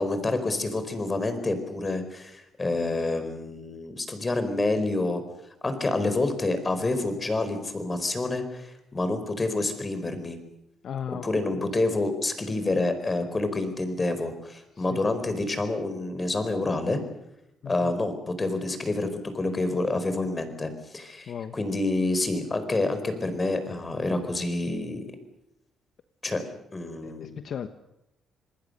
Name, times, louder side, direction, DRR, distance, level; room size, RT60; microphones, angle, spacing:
voice 1, 0.0-5.2 5.6-10.4 11.2-17.0 17.7-19.1 19.3-25.1 26.2-26.4 26.7-27.3, left 2 dB, 25° left, 9 dB, 4.5 m, -28 dB
voice 2, 10.8-11.3 11.5-11.6 14.8-15.0 17.6-17.9 21.3-21.6 27.0-27.7, left 8 dB, 60° left, 9 dB, 1.1 m, -36 dB
26.5 x 20.5 x 6.7 m, 0.87 s
cardioid pair, 90°, 0 cm